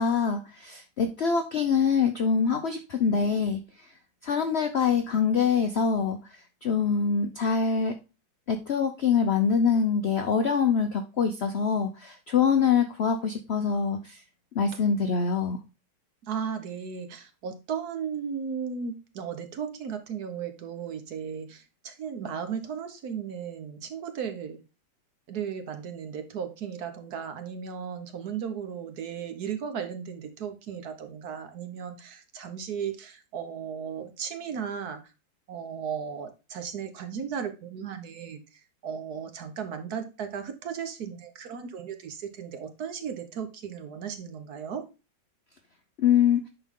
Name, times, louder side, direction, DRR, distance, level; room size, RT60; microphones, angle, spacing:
voice 1, 0.0-3.6 4.2-6.2 6.6-7.9 8.5-14.2 14.6-15.6 46.0-46.4, left 6 dB, 65° left, 6 dB, 0.6 m, -24 dB
voice 2, 16.3-24.6 25.3-35.0 35.5-38.4 38.8-44.9, right 7 dB, 60° right, 8 dB, 1.4 m, -35 dB
10.0 x 4.0 x 3.6 m, 0.30 s
omnidirectional pair, 1.9 m